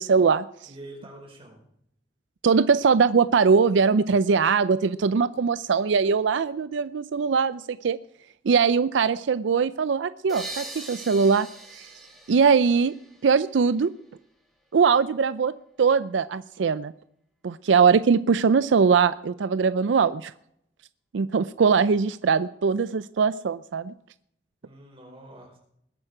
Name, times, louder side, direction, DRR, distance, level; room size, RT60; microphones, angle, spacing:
voice 1, 0.0-0.5 2.4-8.0 8.5-11.5 11.7-11.9 12.3-12.9 13.2-13.9 14.7-15.5 15.8-16.9 17.4-20.3 21.1-23.9, right 5 dB, 90° right, 15 dB, 0.4 m, -21 dB
voice 2, 0.7-1.6 24.6-25.6, right 1 dB, 30° right, -1 dB, 5.1 m, -45 dB
sound 1, 10.3-13.9, right 1 dB, ahead, 3.4 m, -41 dB
21.0 x 8.9 x 4.9 m, 0.73 s
head